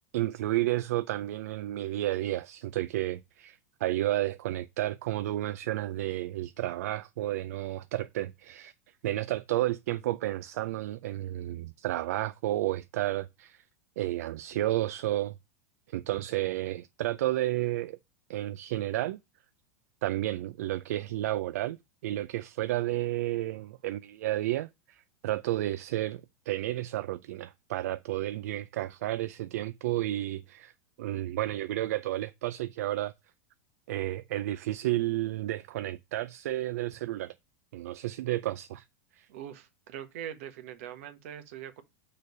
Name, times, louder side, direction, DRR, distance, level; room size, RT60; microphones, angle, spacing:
voice 1, 0.1-8.7 9.0-13.6 14.0-15.3 15.9-18.0 18.3-19.2 20.0-21.8 22.0-30.7 31.0-33.1 33.9-37.3 37.7-38.8 39.1-39.3, right 15 dB, 75° right, 0.4 m, -31 dB
voice 2, 39.3-41.8, right 10 dB, 60° right, 1.1 m, -42 dB
6.5 x 3.3 x 5.2 m
supercardioid pair, 165°, 8 cm